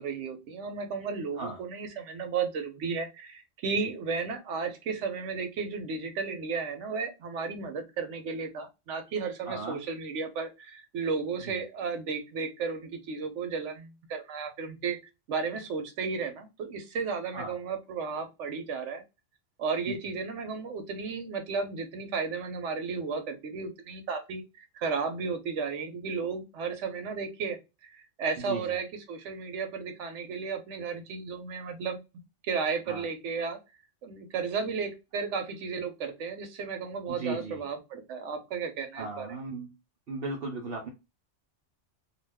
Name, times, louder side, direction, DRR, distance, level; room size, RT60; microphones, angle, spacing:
voice 1, 0.0-15.0 15.3-19.0 19.6-27.6 27.8-32.0 32.4-33.6 34.0-39.3, right 5 dB, 85° right, 7 dB, 1.0 m, -34 dB
voice 2, 9.4-9.8 11.4-11.6 17.3-17.6 19.9-20.0 28.4-28.8 32.9-33.1 37.1-37.6 39.0-39.7 40.1-40.9, right 3 dB, 60° right, 0 dB, 0.8 m, -36 dB
2.4 x 2.3 x 3.3 m, 0.26 s
omnidirectional pair, 1.2 m